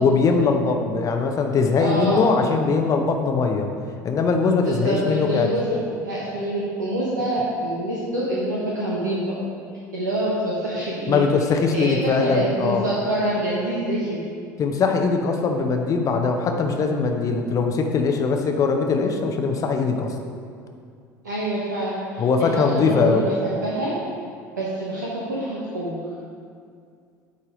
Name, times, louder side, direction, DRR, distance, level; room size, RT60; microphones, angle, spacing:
voice 1, 0.0-3.7 4.0-5.5 11.1-12.8 14.6-20.1 22.2-23.2, left 4 dB, 35° left, 4 dB, 0.8 m, -21 dB
voice 2, 1.8-2.3 4.6-9.4 9.9-11.2 11.7-14.2 21.2-24.0 24.6-25.9, right 1 dB, 75° right, -6 dB, 1.1 m, -26 dB
8.8 x 4.2 x 5.1 m, 2.3 s
figure-of-eight pair, 65°, 10 cm